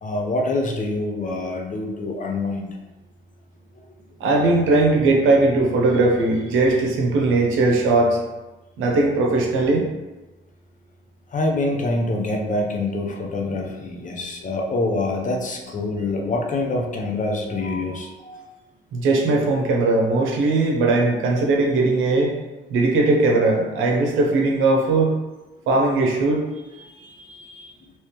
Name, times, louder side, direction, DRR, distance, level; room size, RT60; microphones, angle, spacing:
voice 1, 0.0-2.8 3.7-3.8 11.3-18.5, left 2 dB, 40° left, 1 dB, 0.7 m, -25 dB
voice 2, 4.2-8.2 8.8-9.9 15.6-15.7 18.9-22.3 22.7-25.2 25.7-26.4 26.7-27.6, right 2 dB, 85° right, 0 dB, 0.8 m, -19 dB
3.3 x 3.0 x 3.0 m, 1.1 s
cardioid pair, 90°, 20 cm